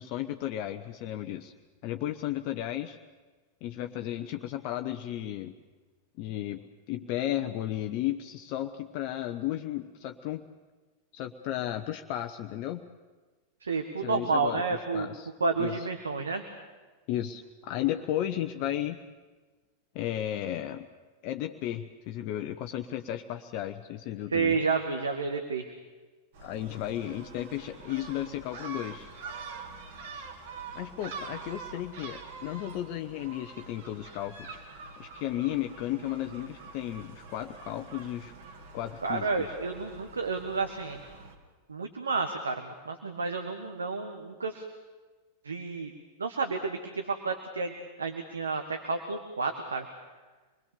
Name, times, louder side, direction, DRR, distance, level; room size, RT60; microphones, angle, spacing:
voice 1, 0.0-1.5 1.8-3.0 3.6-5.5 6.2-10.4 11.1-12.9 14.0-14.6 14.9-15.3 15.6-15.8 17.1-19.0 19.9-20.9 21.2-24.6 26.4-29.1 30.7-34.6 35.0-38.3 38.7-39.3, left 12 dB, 45° left, 6 dB, 0.9 m, -34 dB
voice 2, 13.6-15.1 15.4-16.4 24.3-25.7 39.0-41.0 41.7-44.6 45.4-45.9 46.2-49.9, right 4 dB, 75° right, 6 dB, 1.6 m, -30 dB
Gull seagull, 26.3-41.3, right 4 dB, 55° right, 2.8 m, -45 dB
26.5 x 21.0 x 7.0 m, 1.3 s
figure-of-eight pair, 90°, 0 cm